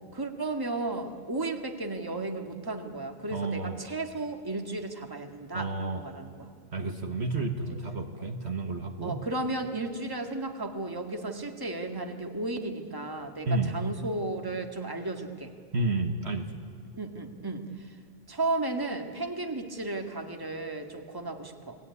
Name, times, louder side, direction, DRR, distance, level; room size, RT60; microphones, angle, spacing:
voice 1, 0.1-6.5 9.0-15.5 16.9-17.9 18.3-21.8, right 2 dB, 15° right, 4 dB, 1.9 m, -34 dB
voice 2, 3.3-3.8 5.5-6.0 6.7-9.2 13.4-13.8 15.7-16.6, right 3 dB, 55° right, 5 dB, 1.7 m, -31 dB
29.5 x 20.0 x 9.7 m, 2.1 s
omnidirectional pair, 1.4 m